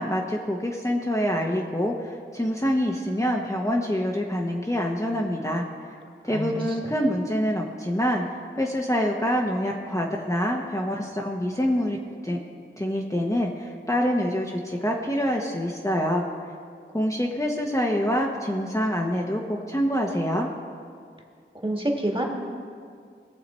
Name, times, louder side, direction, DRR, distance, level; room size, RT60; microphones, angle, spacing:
voice 1, 0.0-5.6 6.2-8.2 8.6-12.0 12.2-12.4 12.8-16.2 16.9-20.5, equal, 15° left, -1 dB, 1.0 m, -26 dB
voice 2, 21.6-22.2, right 1 dB, 25° right, 0 dB, 1.8 m, -26 dB
19.5 x 6.8 x 4.3 m, 2.2 s
wide cardioid pair, 40°, 21 cm